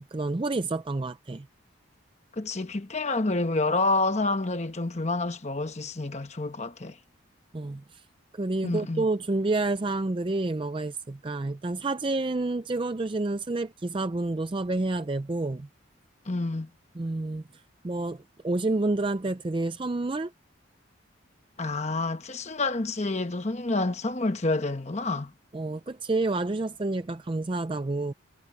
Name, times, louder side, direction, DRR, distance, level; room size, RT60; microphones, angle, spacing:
voice 1, 0.0-1.5 7.5-8.0 8.3-15.7 17.0-17.4 17.8-20.3 25.5-28.1, right 2 dB, 25° right, 0.4 m, -29 dB
voice 2, 2.3-7.0 8.6-9.1 16.2-16.7 21.6-25.3, left 2 dB, 35° left, 1.0 m, -28 dB
head